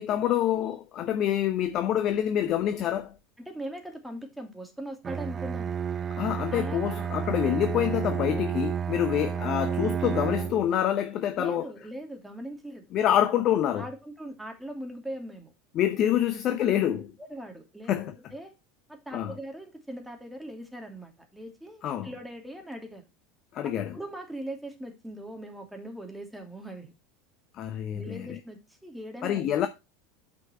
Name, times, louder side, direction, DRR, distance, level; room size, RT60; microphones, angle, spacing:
voice 1, 0.0-3.1 6.2-11.7 12.9-13.9 15.7-17.1 17.9-18.1 19.1-19.3 21.8-22.1 23.5-24.0 27.6-28.4 29.2-29.7, left 10 dB, 40° left, 0.8 m, -26 dB
voice 2, 3.4-5.7 6.5-7.0 11.4-12.8 13.8-15.5 17.2-17.9 18.3-18.5 18.9-23.0 23.6-26.9 27.8-29.7, right 1 dB, 5° right, 2.7 m, -40 dB
Bowed string instrument, 5.0-10.7, right 8 dB, 25° right, 0.4 m, -31 dB
9.2 x 5.9 x 4.3 m
figure-of-eight pair, 75°, 0 cm